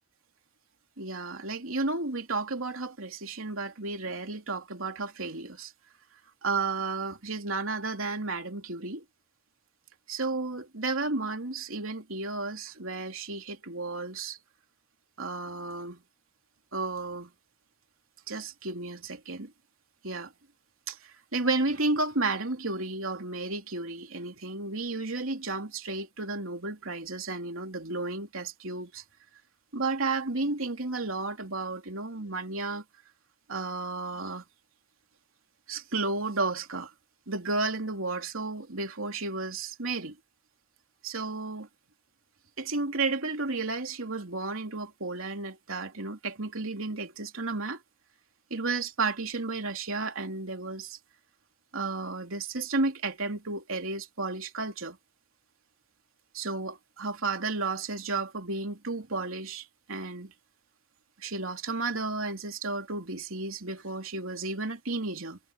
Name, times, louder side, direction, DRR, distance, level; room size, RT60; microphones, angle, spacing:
voice 1, 1.0-5.7 6.4-9.0 10.1-14.4 15.2-16.0 16.7-17.3 18.3-19.5 20.0-20.3 20.9-21.0 21.3-29.0 29.7-32.8 33.5-34.4 35.7-36.9 37.3-40.2 41.0-41.7 42.6-47.8 48.5-51.0 51.7-55.0 56.3-60.3 61.2-65.4, right 3 dB, 80° right, 3.1 m, -32 dB
head